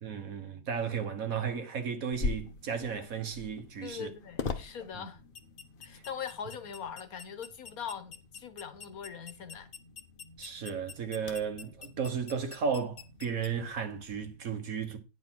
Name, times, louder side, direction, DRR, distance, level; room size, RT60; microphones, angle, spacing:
voice 1, 0.0-4.1 4.9-5.0 10.4-15.0, right 6 dB, 60° right, 1.6 m, -34 dB
sound 1, 2.1-14.4, left 4 dB, 40° left, 0.9 m, -43 dB
voice 2, 3.8-5.2 5.8-9.7, left 7 dB, 65° left, 1.4 m, -41 dB
9.8 x 5.0 x 6.1 m
omnidirectional pair, 1.7 m